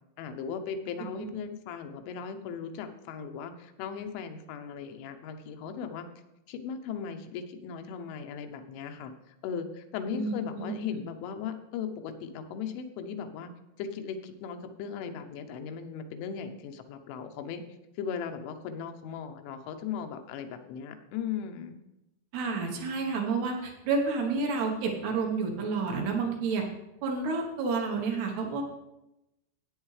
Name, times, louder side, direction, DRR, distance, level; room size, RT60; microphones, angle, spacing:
voice 1, 0.2-6.1 6.5-13.5 13.8-17.6 18.0-21.8, left 7 dB, 90° left, 7 dB, 3.2 m, -37 dB
voice 2, 10.1-10.7 22.3-26.7 27.0-28.6, right 4 dB, 70° right, 1 dB, 2.9 m, -30 dB
13.5 x 8.9 x 3.2 m, 0.92 s
omnidirectional pair, 5.3 m